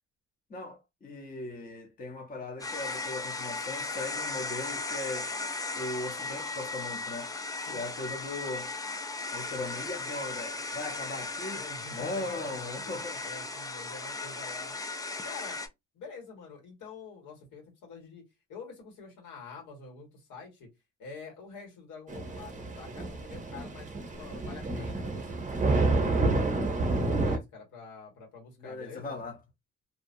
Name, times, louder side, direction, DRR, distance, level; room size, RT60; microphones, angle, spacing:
voice 1, 0.5-5.3 5.8-7.3 7.7-8.7 9.3-11.7 11.9-13.2 28.6-29.4, left 2 dB, 30° left, 0.8 m, -38 dB
sound 1, 2.6-15.7, left 3 dB, 10° left, 0.4 m, -36 dB
voice 2, 11.5-12.6 12.8-12.9 13.2-14.7 15.2-15.6 15.9-20.7 21.0-26.4 26.8-29.2, left 4 dB, 85° left, 1.6 m, -47 dB
Thunder / Rain, 22.1-27.4, right 2 dB, 25° right, 0.8 m, -29 dB
2.6 x 2.3 x 2.6 m
cardioid pair, 90°, 30 cm